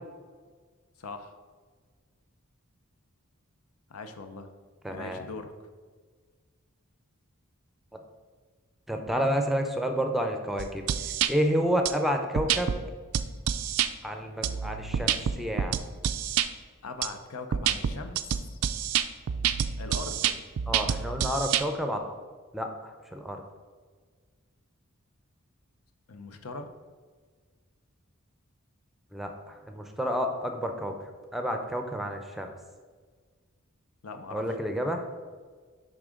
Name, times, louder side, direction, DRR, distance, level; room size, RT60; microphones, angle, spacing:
voice 1, 1.0-1.4 3.9-4.5 4.9-5.7 16.8-18.6 19.8-20.5 26.1-26.7 34.0-34.4, left 3 dB, 80° left, 7 dB, 0.7 m, -41 dB
voice 2, 4.8-5.2 8.9-10.8 11.3-12.7 14.0-15.7 20.7-22.0 22.5-23.4 29.1-30.9 31.3-32.5 34.3-35.0, equal, ahead, 4 dB, 0.5 m, -30 dB
sound 1, 10.6-11.3 11.9-12.0 12.4-12.8 13.1-13.9 14.4-16.5 17.0-17.1 17.5-21.6, right 9 dB, 70° right, 0.4 m, -27 dB
10.0 x 3.7 x 3.7 m, 1.5 s
head